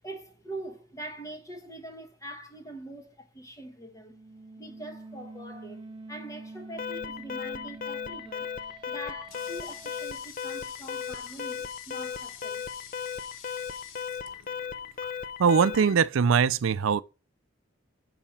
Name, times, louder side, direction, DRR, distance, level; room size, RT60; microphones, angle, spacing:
voice 1, 0.0-4.2 4.6-12.7, right 1 dB, 15° left, 1.3 m, -43 dB
sound 1, 3.8-10.1, right 2 dB, 25° right, 0.4 m, -46 dB
Alarm, 6.8-16.0, left 7 dB, 45° left, 0.5 m, -36 dB
Water tap faucet, 8.6-15.1, left 8 dB, 85° left, 1.0 m, -49 dB
voice 2, 15.4-17.0, right 6 dB, 85° right, 0.4 m, -22 dB
7.5 x 4.9 x 4.2 m
head